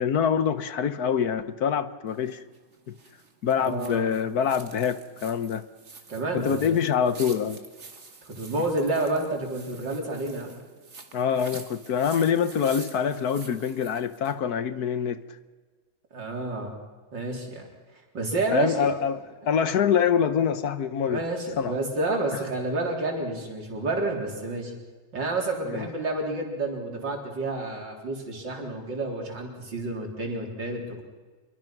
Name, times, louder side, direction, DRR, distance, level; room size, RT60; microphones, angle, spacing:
voice 1, 0.0-2.4 2.9-3.0 3.4-5.7 6.3-7.6 11.1-15.2 18.5-21.2 21.6-21.7 25.6-25.9, left 7 dB, 60° left, 1.4 m, -25 dB
sound 1, 2.1-14.4, right 4 dB, 40° right, 2.2 m, -47 dB
voice 2, 3.6-4.1 6.1-6.8 8.2-10.6 16.1-16.8 17.1-18.9 21.0-24.7 25.1-31.0, right 2 dB, 90° right, 4.5 m, -30 dB
26.0 x 23.0 x 6.0 m
omnidirectional pair, 1.9 m